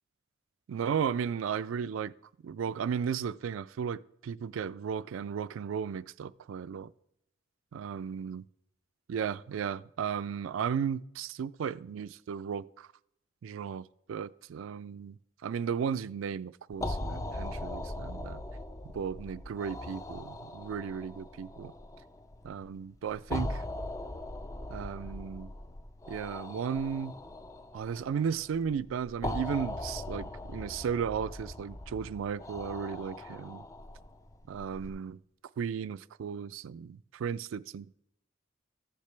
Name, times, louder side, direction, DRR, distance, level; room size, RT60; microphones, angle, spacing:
voice 1, 0.7-2.1 2.4-6.9 7.7-8.4 9.1-12.9 13.4-18.4 18.9-21.7 22.4-23.6 24.7-25.5 26.1-27.1 27.7-33.6 34.5-35.2 35.6-37.9, right 7 dB, 85° right, 0.3 m, -35 dB
sound 1, 16.7-34.9, left 1 dB, 15° left, 0.3 m, -40 dB
14.5 x 6.7 x 3.3 m
head